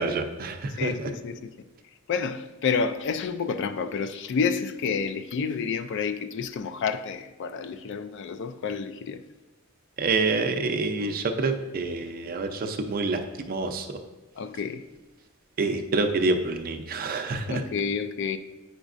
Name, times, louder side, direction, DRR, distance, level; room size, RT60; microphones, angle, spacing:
voice 1, 0.0-1.1 10.0-14.0 15.6-17.6, right 3 dB, 45° right, 0.5 m, -27 dB
voice 2, 0.7-1.5 2.1-9.2 14.4-14.8 17.5-18.4, left 5 dB, 60° left, 0.4 m, -29 dB
8.7 x 5.0 x 2.5 m
head